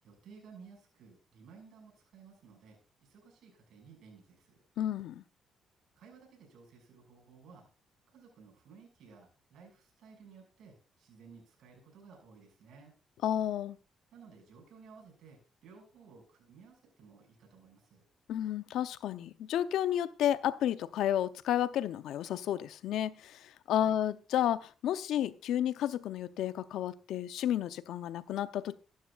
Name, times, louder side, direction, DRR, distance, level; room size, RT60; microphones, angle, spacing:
voice 1, 0.0-4.6 6.0-7.7 8.1-12.9 14.1-18.1 23.7-24.0, right 5 dB, 75° right, 6.0 m, -56 dB
voice 2, 4.8-5.2 13.2-13.8 18.3-28.8, left 11 dB, 80° left, 0.6 m, -32 dB
14.0 x 11.5 x 2.4 m
cardioid pair, 90°, 0 cm